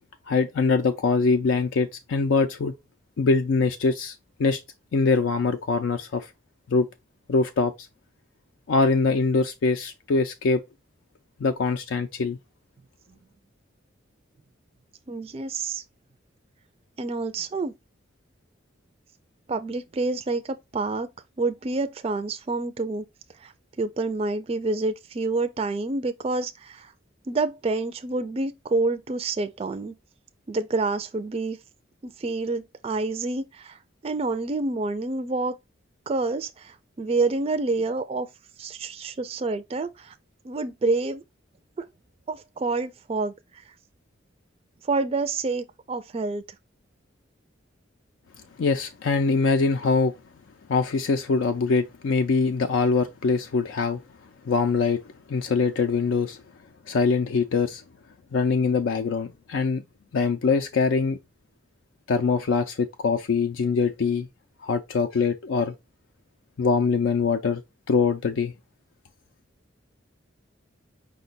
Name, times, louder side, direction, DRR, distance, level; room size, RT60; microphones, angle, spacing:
voice 1, 0.3-2.7 3.2-4.6 4.9-6.3 6.7-6.9 7.3-7.9 8.7-10.6 11.4-12.4 48.6-50.1 50.7-54.0 54.4-55.0 55.3-56.4 56.9-57.8 58.3-59.8 60.1-61.2 62.1-64.3 64.6-65.7 66.6-67.6 67.9-68.5, left 4 dB, 75° left, 0.4 m, -23 dB
voice 2, 15.1-15.8 17.0-17.7 19.5-21.1 21.4-23.0 23.4-23.5 23.8-26.9 27.3-30.0 30.5-31.6 32.0-35.6 36.1-38.3 38.6-40.2 40.4-41.2 41.8-41.9 42.3-43.7 44.8-46.4, right 3 dB, 30° right, 0.3 m, -28 dB
5.2 x 2.2 x 3.9 m
head